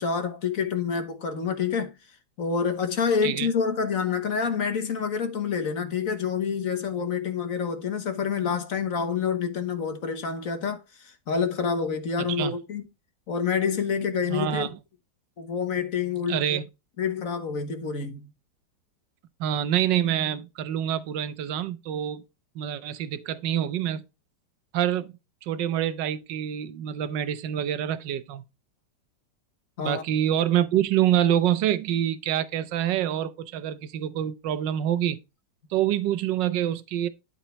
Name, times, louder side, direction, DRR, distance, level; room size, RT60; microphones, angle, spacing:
voice 1, 0.0-1.9 2.4-12.8 13.3-14.7 15.4-16.4 17.0-18.3 29.8-30.0, left 6 dB, 50° left, 1.5 m, -27 dB
voice 2, 14.3-14.8 16.3-16.7 19.4-22.2 22.5-24.0 24.7-25.1 25.4-28.4 29.8-35.2 35.7-37.1, right 11 dB, 80° right, 1.5 m, -26 dB
11.5 x 4.5 x 4.0 m
omnidirectional pair, 2.0 m